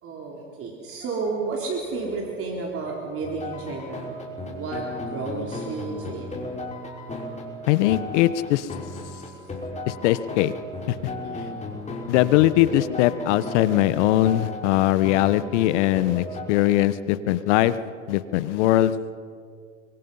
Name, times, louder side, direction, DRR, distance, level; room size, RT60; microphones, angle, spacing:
voice 1, 0.0-4.2 4.4-6.3 11.0-11.6, right 4 dB, 35° right, -1 dB, 4.0 m, -32 dB
sound 1, 3.2-16.4, left 2 dB, 20° left, 5.4 m, -35 dB
voice 2, 7.7-8.7 9.9-10.5 10.9-11.0 12.1-17.8 18.1-18.9, left 14 dB, 70° left, 15 dB, 1.1 m, -21 dB
30.0 x 24.0 x 5.6 m, 2.2 s
supercardioid pair, 110°, 37 cm